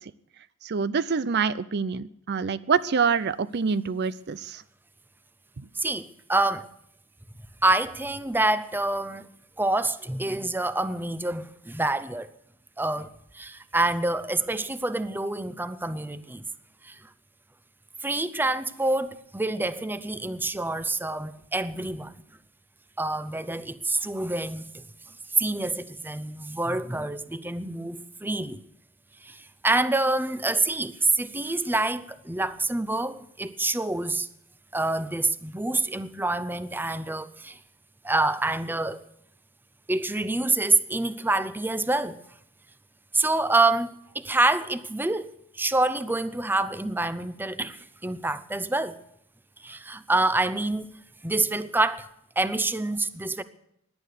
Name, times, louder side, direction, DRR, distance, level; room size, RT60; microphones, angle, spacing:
voice 1, 0.6-4.6, right 5 dB, 50° right, 0.5 m, -26 dB
voice 2, 5.8-6.7 7.6-9.3 9.6-12.3 12.8-16.4 16.8-17.0 18.0-22.1 23.0-24.8 25.4-28.6 29.2-34.3 34.7-37.6 38.0-39.0 39.9-42.2 43.1-49.0 49.6-50.9 51.2-52.1 52.4-53.4, right 2 dB, 10° right, 0.7 m, -27 dB
17.5 x 11.0 x 6.6 m
head